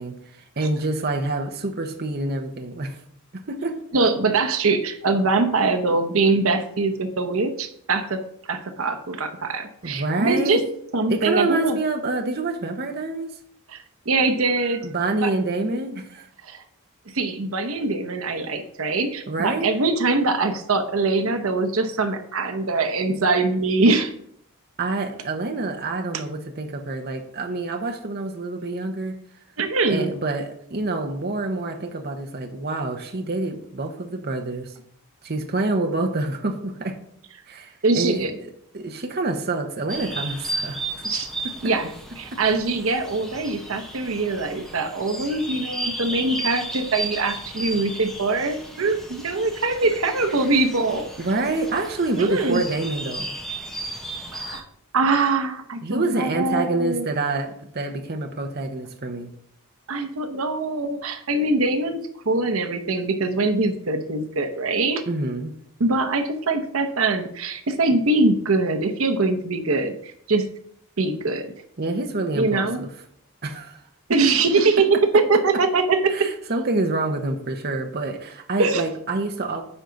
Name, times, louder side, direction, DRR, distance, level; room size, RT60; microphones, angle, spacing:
voice 1, 0.0-3.0 3.3-3.8 9.8-10.6 11.1-13.4 14.8-16.3 19.3-19.7 24.8-29.2 29.9-34.8 35.2-37.0 37.5-41.0 51.2-53.3 55.8-59.3 65.1-65.5 71.8-72.9 73.4-73.8 76.1-79.6, right 2 dB, 45° right, 4 dB, 0.9 m, -27 dB
voice 2, 3.9-8.2 8.5-10.6 10.9-11.8 13.7-14.9 15.2-15.3 16.4-16.6 17.1-24.1 29.6-30.1 37.8-38.3 41.0-41.3 41.6-41.9 42.2-51.1 52.2-52.6 54.3-54.6 54.9-57.1 59.9-62.0 62.3-65.0 65.8-70.4 71.0-71.5 72.3-72.8 74.1-74.9 75.1-76.3 78.6-78.8, right 3 dB, 70° right, 7 dB, 0.9 m, -23 dB
sound 1, 39.9-54.6, right 1 dB, ahead, 1.0 m, -34 dB
9.8 x 3.9 x 5.8 m, 0.67 s
head